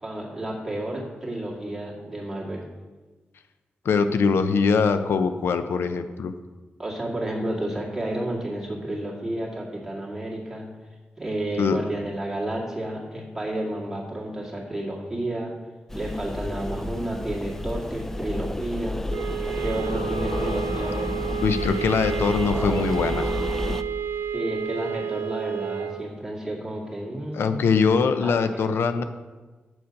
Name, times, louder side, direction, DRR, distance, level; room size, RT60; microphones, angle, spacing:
voice 1, 0.0-2.6 6.8-10.7 11.2-15.5 15.9-19.0 19.6-21.2 24.3-27.7 28.2-28.9, right 1 dB, 10° right, -4 dB, 2.0 m, -31 dB
voice 2, 3.8-6.3 11.6-11.8 21.4-23.3 27.3-29.0, left 5 dB, 85° left, 10 dB, 0.5 m, -22 dB
sound 1, 15.9-23.8, left 1 dB, 10° left, 0.3 m, -31 dB
sound 2, 19.1-26.1, right 8 dB, 85° right, 0.4 m, -31 dB
8.0 x 7.0 x 5.2 m, 1.3 s
wide cardioid pair, 160°, 4 cm